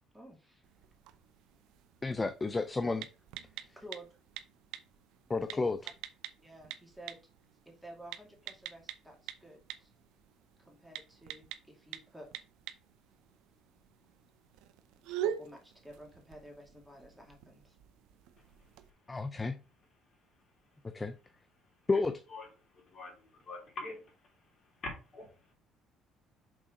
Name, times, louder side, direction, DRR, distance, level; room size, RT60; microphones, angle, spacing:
voice 1, 0.1-0.7 3.8-4.1 5.5-5.7 6.4-7.2 7.7-9.9 10.6-12.3 15.1-17.8, right 1 dB, 5° right, 0 dB, 2.4 m, -52 dB
sound 1, 0.6-18.9, right 10 dB, 85° right, 0.7 m, -46 dB
voice 2, 2.0-3.1 5.3-5.8 19.1-19.6 20.9-21.1 21.9-22.2, left 3 dB, 20° left, 10 dB, 0.5 m, -31 dB
voice 3, 22.7-24.0 24.8-25.5, left 2 dB, 40° left, -1 dB, 3.6 m, -44 dB
6.3 x 4.1 x 5.1 m, 0.33 s
cardioid pair, 110°, 0 cm